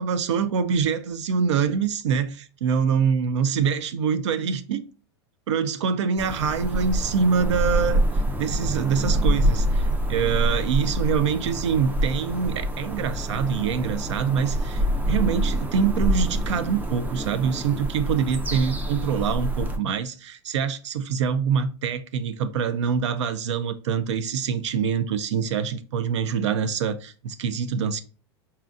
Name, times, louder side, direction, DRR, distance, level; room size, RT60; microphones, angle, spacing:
voice 1, 0.0-4.8 5.5-8.0 8.4-28.0, right 6 dB, 85° right, 0.4 m, -25 dB
sound 1, 6.2-19.8, right 1 dB, 10° right, 0.4 m, -26 dB
4.3 x 2.3 x 2.5 m
hypercardioid pair, 115°, 15 cm